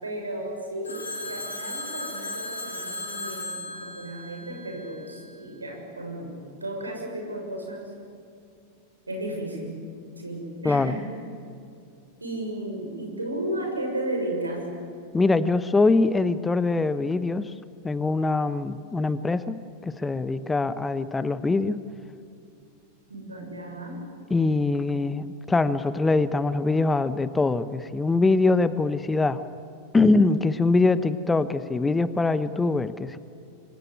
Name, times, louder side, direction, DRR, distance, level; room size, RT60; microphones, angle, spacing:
voice 1, 0.0-6.3 6.6-7.9 9.1-9.8 10.2-11.1 12.2-14.7 23.1-24.0, right 1 dB, 80° right, 2 dB, 6.7 m, -34 dB
Telephone, 0.8-5.1, left 2 dB, 75° left, 5.9 m, -36 dB
voice 2, 10.6-11.0 15.1-17.5 17.8-21.8 24.3-29.4 29.9-33.2, left 3 dB, 10° left, 15 dB, 0.9 m, -23 dB
26.0 x 23.5 x 9.6 m, 2.5 s
figure-of-eight pair, 90°, 0 cm